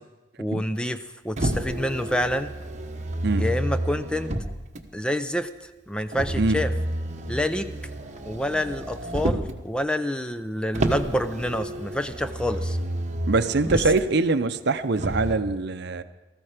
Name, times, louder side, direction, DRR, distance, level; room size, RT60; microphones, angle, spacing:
voice 1, 0.4-2.5 3.4-4.3 4.9-5.5 5.9-6.7 7.3-7.7 8.3-12.8 13.9-14.0, left 1 dB, 5° left, 10 dB, 0.5 m, -27 dB
Motor vehicle (road), 1.4-4.8 6.1-9.6 10.7-14.0 15.0-15.4, right 1 dB, 40° right, 1.2 m, -30 dB
voice 2, 13.3-16.0, right 3 dB, 60° right, 11 dB, 0.7 m, -23 dB
18.5 x 14.0 x 5.0 m, 1.1 s
head